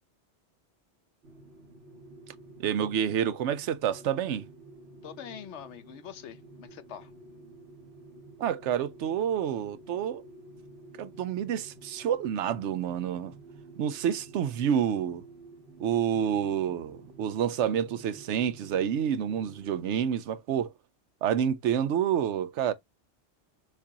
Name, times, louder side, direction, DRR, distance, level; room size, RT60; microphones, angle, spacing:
sound 1, 1.2-19.8, right 2 dB, 65° right, 1.4 m, -51 dB
voice 1, 2.6-4.5 8.4-10.2 11.0-13.3 13.8-15.2 15.8-20.7 21.2-22.7, right 9 dB, 85° right, 0.9 m, -28 dB
voice 2, 5.0-7.1, left 9 dB, 75° left, 1.0 m, -44 dB
6.5 x 2.4 x 2.8 m
omnidirectional pair, 1.2 m